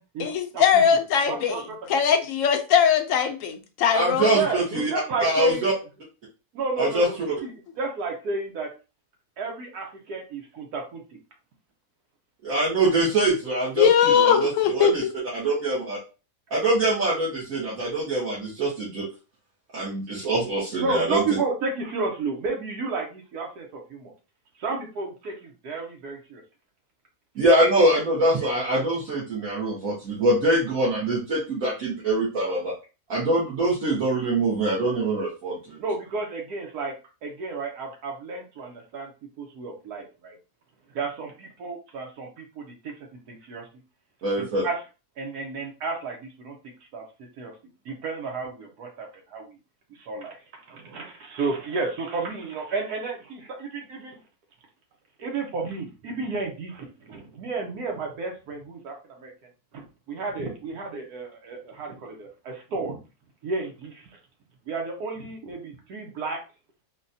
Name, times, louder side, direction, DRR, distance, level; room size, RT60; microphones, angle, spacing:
voice 1, 0.2-1.5 1.9-4.4 13.8-14.9, left 7 dB, 65° left, 0.9 m, -20 dB
voice 2, 1.3-1.6 4.3-5.7 6.5-7.5 7.8-8.7 9.4-11.0 20.8-24.1 24.6-26.4 35.8-36.9 37.2-39.1 39.4-40.4 40.9-42.9 43.3-43.6 44.3-44.8 45.2-46.6 46.9-47.0 47.4-47.5 47.8-49.6 50.0-50.4 50.7-54.2 55.2-59.3 59.7-63.0 63.4-64.1 64.7-66.4, right 3 dB, 90° right, 1.3 m, -32 dB
voice 3, 3.9-4.9 5.2-5.7 6.8-7.1 12.4-13.9 14.1-15.0 15.3-16.0 16.5-19.1 19.7-21.4 27.3-32.7 33.1-35.8 44.2-44.6, right 1 dB, 65° right, 1.4 m, -24 dB
3.9 x 2.2 x 2.6 m
omnidirectional pair, 1.6 m